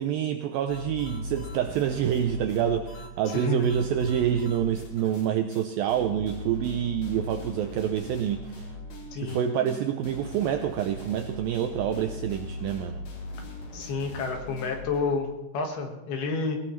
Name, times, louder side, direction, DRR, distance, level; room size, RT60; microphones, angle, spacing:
voice 1, 0.0-8.6 9.2-13.0, right 9 dB, 80° right, 7 dB, 2.1 m, -27 dB
sound 1, 0.7-5.3 5.5-5.6 5.9-15.2, left 1 dB, 45° left, 3.0 m, -39 dB
voice 2, 3.3-3.7 9.1-9.4 13.7-16.6, left 4 dB, 70° left, 3 dB, 3.5 m, -30 dB
19.0 x 18.5 x 3.2 m, 1.1 s
omnidirectional pair, 4.8 m